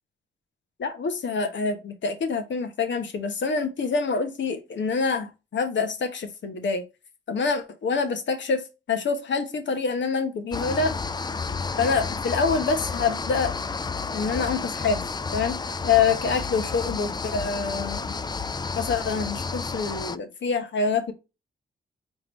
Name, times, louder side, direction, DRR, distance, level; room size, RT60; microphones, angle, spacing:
voice 1, 0.8-6.8 7.3-10.9 11.8-13.5 14.1-15.0 15.3-18.2 18.7-21.1, left 5 dB, 65° left, 1.0 m, -26 dB
sound 1, 10.5-20.2, left 4 dB, 20° left, 0.4 m, -31 dB
3.8 x 3.6 x 3.0 m
cardioid pair, 55°, 20 cm